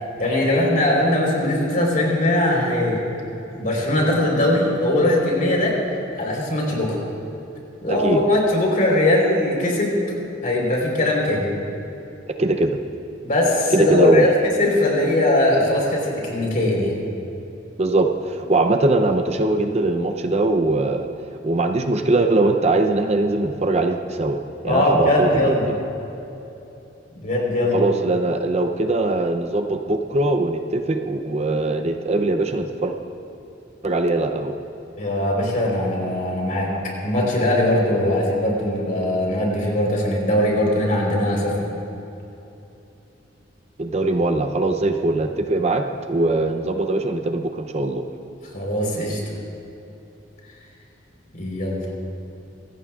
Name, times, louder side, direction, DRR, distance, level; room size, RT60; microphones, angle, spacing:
voice 1, 0.2-3.0 3.5-5.7 6.2-7.0 7.8-10.0 10.4-11.5 13.2-14.3 14.6-17.0 24.7-25.7 27.2-27.8 35.0-36.7 37.0-41.7 48.5-49.2 51.3-51.9, left 1 dB, 45° left, -2 dB, 4.0 m, -20 dB
voice 2, 7.9-8.2 12.4-12.8 13.7-14.2 17.8-21.1 21.4-24.4 24.6-25.7 27.7-32.9 33.8-34.6 43.8-48.1, right 2 dB, 35° right, 5 dB, 0.6 m, -21 dB
23.5 x 17.5 x 2.4 m, 2.9 s
head